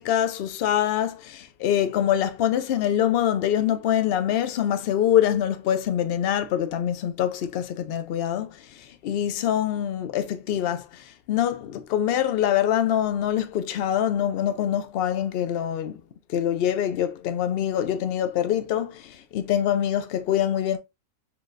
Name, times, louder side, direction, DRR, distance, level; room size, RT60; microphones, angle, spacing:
voice 1, 0.0-16.0 16.3-20.8, left 10 dB, 75° left, 0.5 m, -24 dB
4.5 x 2.7 x 2.5 m
omnidirectional pair, 1.6 m